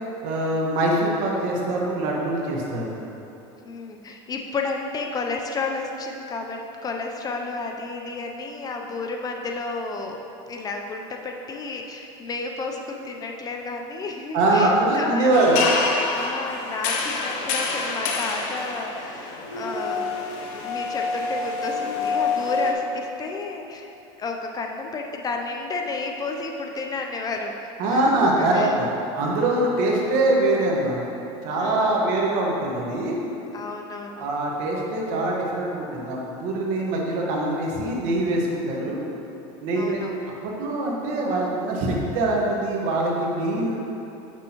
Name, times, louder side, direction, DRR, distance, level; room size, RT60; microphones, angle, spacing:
voice 1, 0.2-3.0 14.3-15.6 27.8-28.9 29.1-31.0 31.4-33.2 34.2-39.0 39.6-43.8, right 2 dB, 60° right, -2 dB, 1.3 m, -23 dB
voice 2, 3.6-10.2 10.5-15.3 16.1-20.2 20.5-23.9 24.2-28.8 31.5-32.1 33.5-34.3 39.7-40.3, left 3 dB, 25° left, 3 dB, 0.5 m, -32 dB
sound 1, 15.3-22.7, left 4 dB, 60° left, 0.7 m, -27 dB
7.2 x 6.1 x 2.9 m, 2.9 s
supercardioid pair, 125°, 15 cm